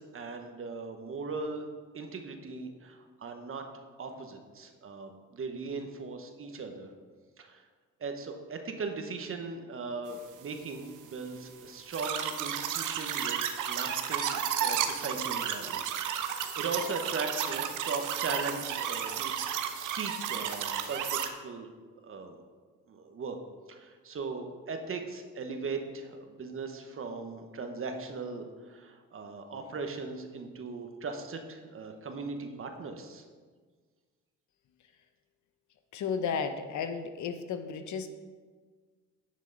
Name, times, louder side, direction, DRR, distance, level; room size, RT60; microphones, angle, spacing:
voice 1, 0.0-1.7 1.9-6.9 7.4-7.7 8.0-13.4 13.6-15.8 16.1-19.5 19.7-21.7 22.0-22.3 22.9-23.4 23.7-33.2, right 4 dB, 45° right, 5 dB, 1.2 m, -39 dB
sound 1, 11.9-21.3, right 8 dB, 80° right, 0.8 m, -32 dB
voice 2, 35.9-38.1, left 6 dB, 70° left, 8 dB, 0.9 m, -33 dB
9.7 x 6.5 x 4.0 m, 1.5 s
cardioid pair, 90°, 30 cm